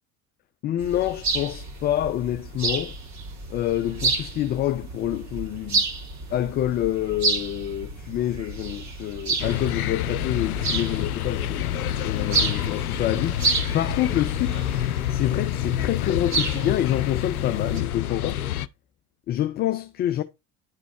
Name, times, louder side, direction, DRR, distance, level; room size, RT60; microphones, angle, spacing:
voice 1, 0.6-2.9 3.5-5.8 6.3-11.6 12.0-14.7 15.1-18.5 19.3-20.2, left 12 dB, 25° left, 0.4 m, -27 dB
sound 1, 0.8-17.8, right 3 dB, 40° right, 2.8 m, -31 dB
sound 2, 9.4-18.7, left 12 dB, 75° left, 0.5 m, -28 dB
10.5 x 4.1 x 4.1 m
figure-of-eight pair, 65°, 44 cm